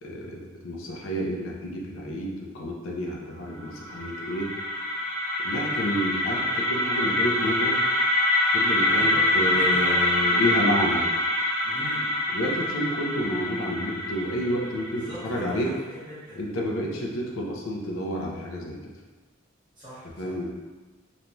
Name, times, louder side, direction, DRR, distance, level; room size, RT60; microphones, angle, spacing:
voice 1, 0.0-4.5 5.4-7.8 8.5-11.1 12.3-15.7 16.4-18.8 20.2-20.5, equal, 75° left, -1 dB, 0.5 m, -30 dB
sound 1, 3.6-15.5, left 1 dB, 40° left, 1.1 m, -25 dB
voice 2, 8.9-11.0 11.6-12.1 14.9-16.4 19.8-20.4, equal, 20° right, -12 dB, 1.1 m, -41 dB
3.0 x 2.6 x 2.2 m, 1.3 s
head